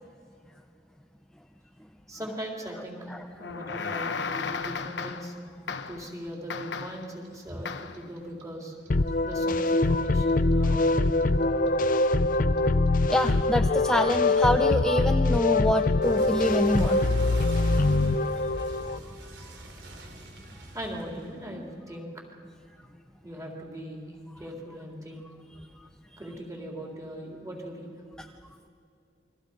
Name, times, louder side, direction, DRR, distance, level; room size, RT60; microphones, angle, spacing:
voice 1, 2.1-5.3 5.9-8.7 9.2-11.1 20.7-22.1 23.2-25.3 26.2-27.9, equal, 20° right, -1 dB, 4.0 m, -39 dB
sound 1, 3.4-5.4 5.7-6.1 6.5-7.1 7.7-8.0, left 5 dB, 85° left, 1.0 m, -34 dB
Clock, 6.3-9.3 9.6-12.6 12.9-21.7, right 1 dB, 80° right, 3.3 m, -41 dB
sound 2, 8.9-19.0, left 2 dB, 50° left, 0.6 m, -23 dB
voice 2, 13.1-17.0 17.5-17.6, left 1 dB, 5° left, 6 dB, 0.6 m, -26 dB
28.5 x 23.5 x 5.3 m, 2.4 s
head